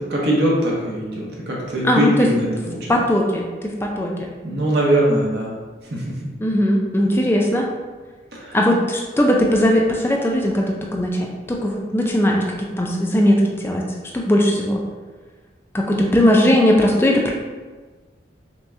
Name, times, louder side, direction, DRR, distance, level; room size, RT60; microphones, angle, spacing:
voice 1, 0.1-3.0 4.4-5.5 8.3-8.6, right 1 dB, 65° right, -4 dB, 1.0 m, -21 dB
voice 2, 1.8-2.3 2.9-4.3 6.4-7.7 8.5-13.8 14.1-14.8 15.7-17.3, equal, 10° left, -1 dB, 0.4 m, -18 dB
5.4 x 2.3 x 2.7 m, 1.4 s
head